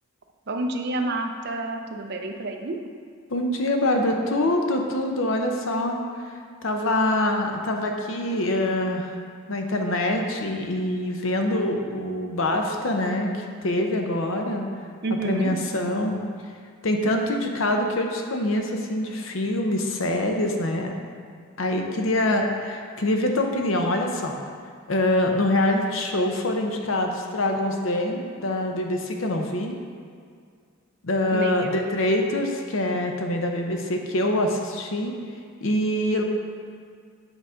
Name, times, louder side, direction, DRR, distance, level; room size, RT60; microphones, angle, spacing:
voice 1, 0.5-2.8 15.0-15.5 31.3-31.8, right 2 dB, 50° right, 3 dB, 0.6 m, -29 dB
voice 2, 3.3-6.0 6.6-9.2 9.5-14.7 15.2-16.2 16.8-20.9 21.6-24.4 24.9-29.8 31.0-35.1 35.6-36.2, left 1 dB, 65° left, 3 dB, 0.7 m, -25 dB
8.0 x 3.9 x 5.0 m, 2.2 s
head